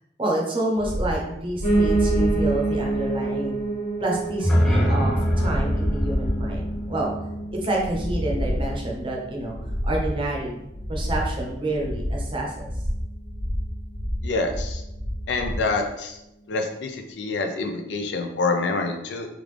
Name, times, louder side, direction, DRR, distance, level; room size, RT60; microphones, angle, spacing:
voice 1, 0.2-3.6 4.0-7.1 7.6-9.6 9.8-10.5 10.9-12.7, right 1 dB, 30° right, -2 dB, 0.7 m, -28 dB
sound 1, 0.8-15.7, equal, 75° right, 0.8 m, -29 dB
Piano, 1.6-10.7 11.1-12.3 12.6-12.7 12.9-13.0 13.2-13.3 13.9-14.0, right 2 dB, 45° left, 1.5 m, -28 dB
sound 2, 4.3-8.3, equal, 5° left, 0.4 m, -25 dB
voice 2, 14.2-14.8 15.3-16.2 16.5-19.3, left 3 dB, 70° left, 4 dB, 0.5 m, -26 dB
3.6 x 2.4 x 3.2 m, 0.88 s
head